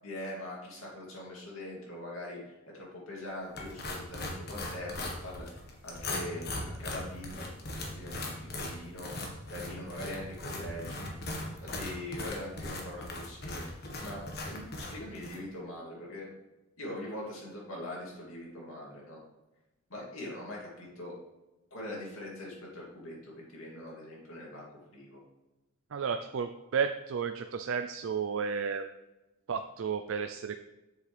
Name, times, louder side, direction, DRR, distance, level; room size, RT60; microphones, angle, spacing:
voice 1, 0.0-5.5 5.8-7.6 7.8-9.1 9.5-11.1 11.6-16.3 16.8-19.2 19.9-21.1 21.7-25.2, left 1 dB, 75° left, -4 dB, 2.6 m, -42 dB
sound 1, 3.6-15.4, left 1 dB, 45° left, 1.3 m, -39 dB
voice 2, 25.9-28.9 29.5-30.6, right 6 dB, 65° right, 8 dB, 0.4 m, -32 dB
7.5 x 6.7 x 3.3 m, 1.0 s
head